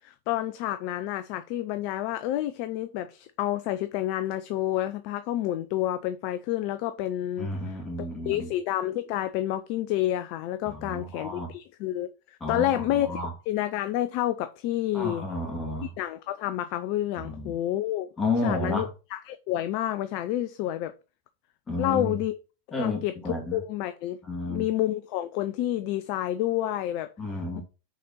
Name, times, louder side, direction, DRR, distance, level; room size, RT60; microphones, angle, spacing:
voice 1, 0.0-7.5 8.2-13.2 13.5-15.2 15.8-18.1 18.4-20.9 21.8-22.3 22.8-23.1 23.5-24.2 24.5-27.1, left 13 dB, 45° left, 0.5 m, -29 dB
voice 2, 7.4-8.5 10.6-11.5 12.4-13.3 14.9-15.9 17.2-17.5 18.2-18.9 21.7-22.2 22.7-23.6 24.2-24.7 27.2-27.6, left 2 dB, 20° left, 2.8 m, -31 dB
6.6 x 5.1 x 4.5 m
figure-of-eight pair, 90°, 0 cm